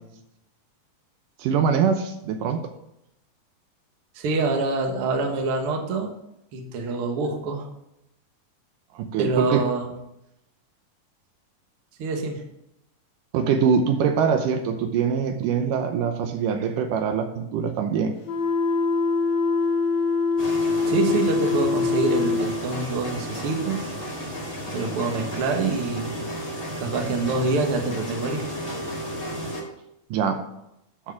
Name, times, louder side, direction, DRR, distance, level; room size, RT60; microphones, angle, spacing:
voice 1, 1.4-2.6 8.9-9.6 13.3-18.1 30.1-30.4, right 6 dB, 80° right, 6 dB, 2.3 m, -23 dB
voice 2, 4.2-6.1 6.5-7.7 9.2-9.9 12.0-12.4 20.9-23.9 24.7-26.1 26.8-28.4, right 3 dB, 55° right, 3 dB, 1.7 m, -26 dB
sound 1, 18.2-22.5, left 4 dB, 60° left, 2.4 m, -23 dB
sound 2, 20.4-29.6, equal, 30° left, 1.0 m, -33 dB
11.5 x 4.5 x 5.8 m, 0.82 s
omnidirectional pair, 3.9 m